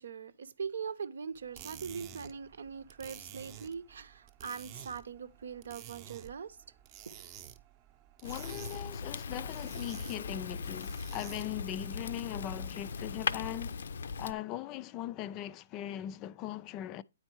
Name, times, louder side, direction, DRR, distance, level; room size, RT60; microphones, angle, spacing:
voice 1, 0.0-6.6 7.1-7.2, right 6 dB, 80° right, 0.7 m, -41 dB
sound 1, 1.3-11.7, right 11 dB, 30° right, 0.7 m, -51 dB
Fire, 8.2-14.3, left 5 dB, 75° left, 0.5 m, -39 dB
voice 2, 8.2-13.9 14.2-17.0, left 12 dB, 25° left, 0.3 m, -40 dB
9.4 x 4.4 x 4.5 m
hypercardioid pair, 155°, 0 cm